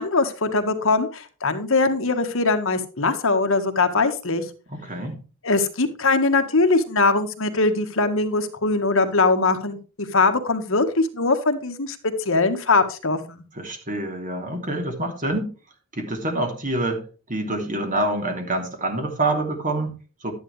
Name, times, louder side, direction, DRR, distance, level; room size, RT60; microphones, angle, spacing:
voice 1, 0.0-4.4 5.4-9.8 10.1-13.4, left 3 dB, 65° left, 1.6 m, -21 dB
voice 2, 4.7-5.2 13.5-15.5 15.9-20.3, right 2 dB, 40° right, 3.1 m, -27 dB
12.0 x 10.5 x 3.3 m
head